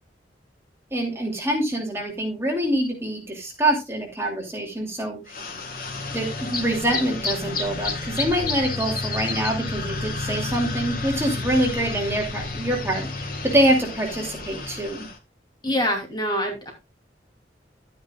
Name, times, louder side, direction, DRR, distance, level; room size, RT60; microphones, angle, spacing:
voice 1, 0.9-5.2 6.1-15.1, right 1 dB, 15° right, 0 dB, 2.7 m, -25 dB
sound 1, 5.3-15.2, left 3 dB, 55° left, 1.9 m, -31 dB
voice 2, 15.6-16.7, equal, 25° left, 2 dB, 2.8 m, -25 dB
12.0 x 9.5 x 2.4 m, 0.23 s
head